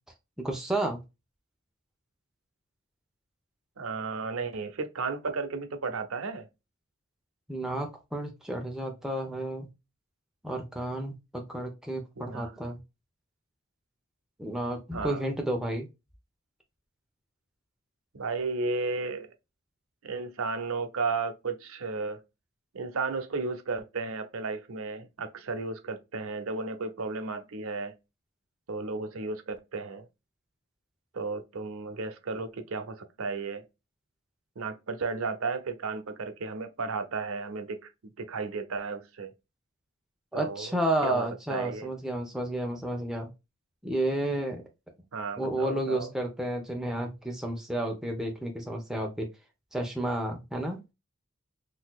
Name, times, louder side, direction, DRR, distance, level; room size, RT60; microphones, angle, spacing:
voice 1, 0.4-1.0 7.5-9.7 10.4-12.8 14.4-15.9 40.3-43.3 43.8-44.6 45.4-49.3 49.7-50.8, right 1 dB, 5° right, 0.7 m, -31 dB
voice 2, 3.8-6.5 12.2-12.5 14.9-15.2 18.1-19.3 20.0-22.2 22.7-28.0 28.7-30.1 31.1-33.7 34.6-39.3 40.3-40.7 41.0-41.9 45.1-46.1, right 4 dB, 85° right, 0.7 m, -34 dB
4.0 x 2.7 x 2.3 m
head